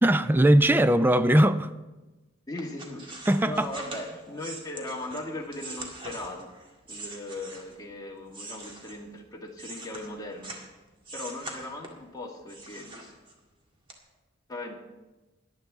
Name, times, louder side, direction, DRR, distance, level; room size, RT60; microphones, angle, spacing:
voice 1, 0.0-1.7 3.3-3.7, right 1 dB, 10° right, 0.4 m, -20 dB
voice 2, 2.5-3.0 3.4-6.5 6.9-10.6 11.1-13.1 14.5-14.7, left 1 dB, 20° left, 1.6 m, -38 dB
sound 1, 2.6-7.8 8.3-10.7 11.0-12.1 12.5-13.5 13.9-14.0, right 2 dB, 25° right, 1.9 m, -42 dB
18.5 x 11.5 x 3.6 m
head